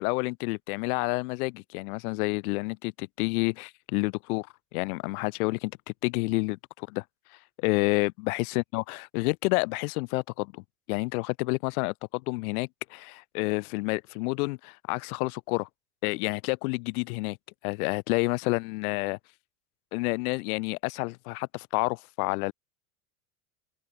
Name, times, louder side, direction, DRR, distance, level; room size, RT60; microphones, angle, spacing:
voice 1, 0.0-4.5 4.7-7.0 7.6-10.6 10.9-15.7 16.0-17.4 17.6-19.2 19.9-22.5, left 26 dB, 70° left, 3.9 m, -29 dB
supercardioid pair, 110°, 45 cm